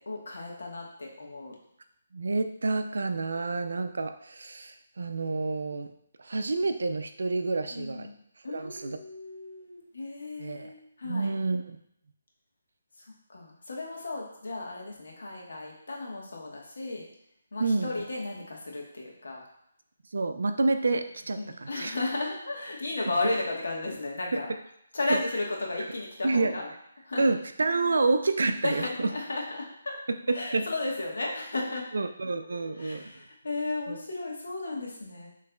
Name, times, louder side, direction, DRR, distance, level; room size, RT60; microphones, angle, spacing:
voice 1, 0.0-1.5 7.7-8.1 8.4-11.3 13.0-17.0 17.5-19.4 21.4-24.5 24.9-26.7 27.0-27.2 28.6-30.0 30.3-31.9 32.5-35.3, left 2 dB, 75° left, -2 dB, 1.3 m, -34 dB
voice 2, 2.1-5.9 6.2-8.1 8.5-9.0 10.4-10.7 11.0-11.8 17.6-17.9 20.1-21.9 25.1-25.2 26.2-26.5 27.2-29.1 30.3-30.7 31.9-33.1 33.9-34.0, right 3 dB, 75° right, 8 dB, 0.4 m, -28 dB
6.6 x 3.1 x 2.3 m, 0.75 s
hypercardioid pair, 165°, 0 cm